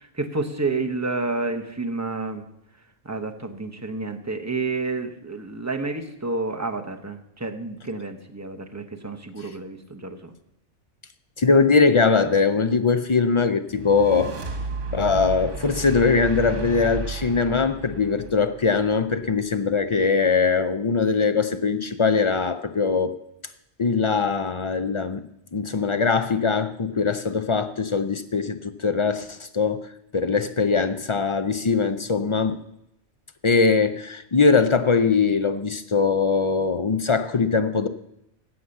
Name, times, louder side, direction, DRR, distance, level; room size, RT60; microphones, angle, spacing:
voice 1, 0.0-2.5 3.0-10.3, right 3 dB, 15° right, 5 dB, 0.8 m, -30 dB
voice 2, 11.4-14.3 14.9-23.1 23.8-25.2 25.5-32.6 33.4-37.9, left 4 dB, 50° left, 10 dB, 0.3 m, -21 dB
sound 1, 13.7-19.0, right 3 dB, 80° right, 1.8 m, -33 dB
15.5 x 5.8 x 6.5 m, 0.82 s
omnidirectional pair, 1.2 m